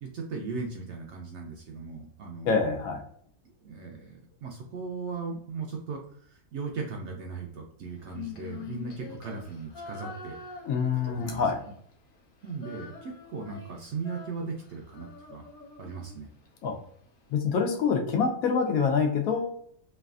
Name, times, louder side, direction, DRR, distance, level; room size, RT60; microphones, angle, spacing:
voice 1, 0.0-2.6 3.6-10.4 11.0-11.4 12.4-15.4 15.8-16.3, right 4 dB, 65° right, 1 dB, 0.7 m, -38 dB
voice 2, 2.5-3.0 10.6-11.6 16.6-16.8 17.3-19.5, left 5 dB, 75° left, 3 dB, 1.0 m, -26 dB
Female singing, 8.0-11.9 12.2-16.5, left 5 dB, 55° left, 0.6 m, -45 dB
3.2 x 2.3 x 2.3 m, 0.65 s
omnidirectional pair, 1.5 m